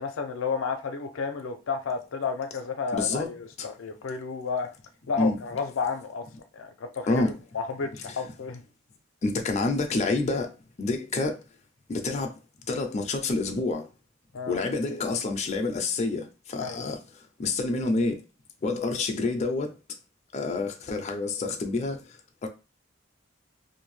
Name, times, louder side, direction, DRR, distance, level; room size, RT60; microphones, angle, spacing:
voice 1, 0.0-3.4 3.6-4.7 5.1-6.3 6.5-8.6 14.3-14.6 16.6-16.9, left 5 dB, 90° left, 0.5 m, -32 dB
voice 2, 2.9-3.3 5.2-5.4 7.1-7.3 8.1-8.2 9.2-10.5 10.8-11.4 11.9-12.4 12.7-13.9 14.5-18.2 18.6-19.7 20.3-22.5, left 3 dB, 35° left, 0.4 m, -28 dB
2.6 x 2.1 x 3.1 m
head